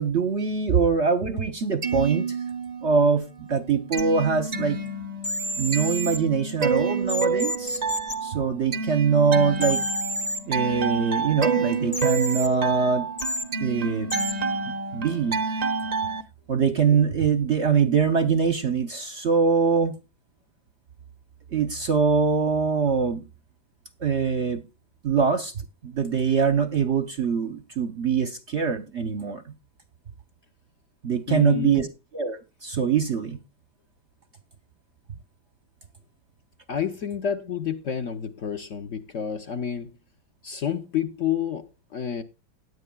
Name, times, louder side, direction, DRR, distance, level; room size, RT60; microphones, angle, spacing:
voice 1, 0.0-2.4 2.8-4.8 5.6-7.8 8.2-9.8 10.5-13.1 13.6-14.1 14.7-15.4 16.5-19.9 21.5-23.2 24.0-24.6 25.0-25.5 25.8-29.5 31.0-31.9 32.1-33.4, right 5 dB, 55° right, 0.8 m, -23 dB
sound 1, 1.6-3.0 3.4-16.2, right 4 dB, 75° right, 0.3 m, -29 dB
sound 2, 4.0-4.1 5.2-6.2 7.1-8.1 9.6-10.4 11.9-12.5 13.2-13.4 14.1-14.3, equal, 25° left, 0.8 m, -29 dB
voice 2, 31.3-31.9 36.7-39.9 40.4-42.2, left 8 dB, 55° left, 0.9 m, -29 dB
17.5 x 9.7 x 2.2 m
omnidirectional pair, 2.1 m